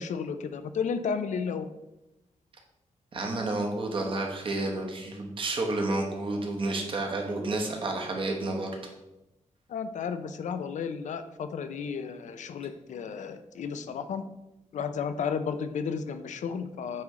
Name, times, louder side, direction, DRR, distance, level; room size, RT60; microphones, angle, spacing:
voice 1, 0.0-1.7 9.7-14.2 14.7-17.0, left 6 dB, 75° left, 10 dB, 0.4 m, -33 dB
voice 2, 3.1-8.9, right 2 dB, 45° right, 1 dB, 1.0 m, -30 dB
8.5 x 3.2 x 3.6 m, 0.94 s
wide cardioid pair, 175°, 13 cm